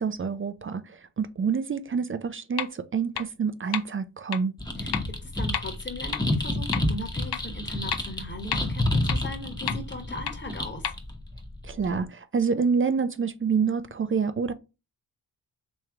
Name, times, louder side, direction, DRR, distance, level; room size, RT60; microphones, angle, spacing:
voice 1, 0.0-4.5 11.6-14.5, right 5 dB, 30° right, 0.5 m, -27 dB
sound 1, 2.6-2.7 3.2-3.3 3.7-3.8 4.3-4.4 4.9-5.0 5.5-5.6 6.1-6.2 6.7-6.8 7.3-7.4 7.9-8.0 8.5-8.6 9.1-9.2 9.7-9.8 10.3-10.4 10.8-10.9, left 10 dB, 65° left, 0.6 m, -29 dB
sound 2, 4.6-12.0, left 1 dB, 10° left, 1.0 m, -30 dB
voice 2, 4.8-10.9, left 1 dB, 25° left, 1.3 m, -39 dB
3.2 x 3.1 x 3.6 m
cardioid pair, 50°, 41 cm